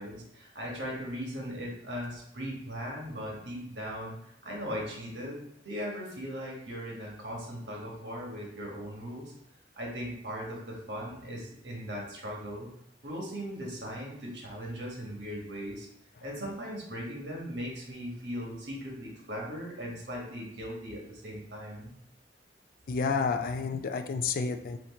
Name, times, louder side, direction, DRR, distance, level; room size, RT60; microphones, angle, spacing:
voice 1, 0.0-4.2 4.4-9.3 9.8-12.7 13.0-15.9 16.2-21.9, equal, 70° right, -2 dB, 1.3 m, -38 dB
voice 2, 22.9-24.8, left 5 dB, 55° left, 7 dB, 0.4 m, -30 dB
4.4 x 2.5 x 4.1 m, 0.73 s
head